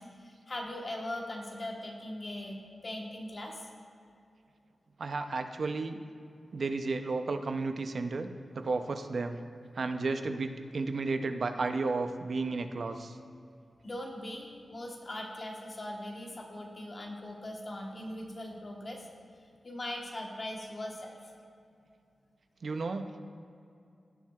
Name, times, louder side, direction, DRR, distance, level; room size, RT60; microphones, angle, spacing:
voice 1, 0.0-3.7 13.8-19.1 19.6-21.3, left 1 dB, 35° left, 0 dB, 1.1 m, -40 dB
voice 2, 5.0-6.0 6.5-8.3 8.5-9.4 9.7-13.2 22.6-23.2, right 3 dB, 55° right, 7 dB, 0.5 m, -33 dB
16.5 x 7.2 x 2.3 m, 2.5 s
wide cardioid pair, 165°, 0 cm